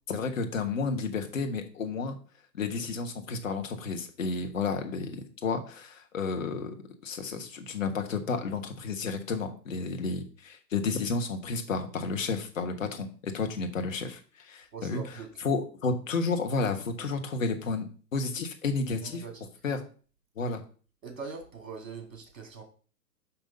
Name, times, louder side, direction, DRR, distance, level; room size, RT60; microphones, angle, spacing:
voice 1, 0.1-2.2 2.5-6.7 7.0-19.2 19.6-19.8 20.4-20.6, left 4 dB, 50° left, 5 dB, 1.5 m, -32 dB
voice 2, 14.7-15.3 19.0-19.4 21.0-22.6, right 5 dB, 50° right, 4 dB, 2.8 m, -42 dB
5.7 x 5.4 x 5.3 m, 0.40 s
figure-of-eight pair, 130°, 50 cm